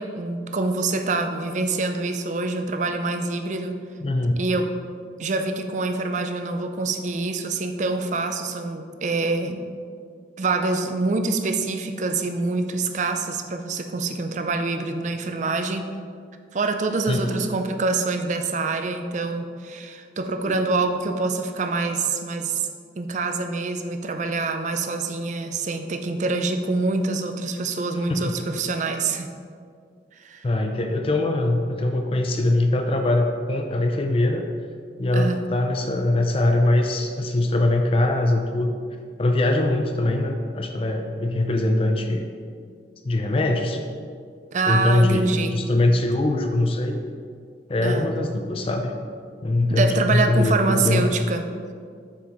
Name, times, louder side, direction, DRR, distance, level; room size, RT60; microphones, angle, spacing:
voice 1, 0.0-3.8 4.4-4.7 5.2-9.7 10.4-15.9 16.5-22.7 23.0-29.3 30.2-30.4 35.1-35.4 44.5-45.6 47.8-48.1 49.7-51.4, right 3 dB, 40° right, 6 dB, 0.4 m, -25 dB
voice 2, 4.0-4.4 17.1-17.4 20.4-20.5 28.1-28.3 30.4-34.5 35.0-38.7 39.2-42.3 43.0-43.8 44.7-47.0 47.7-48.9 49.4-51.0, left 2 dB, 30° left, 4 dB, 0.4 m, -22 dB
7.7 x 5.9 x 3.1 m, 2.2 s
head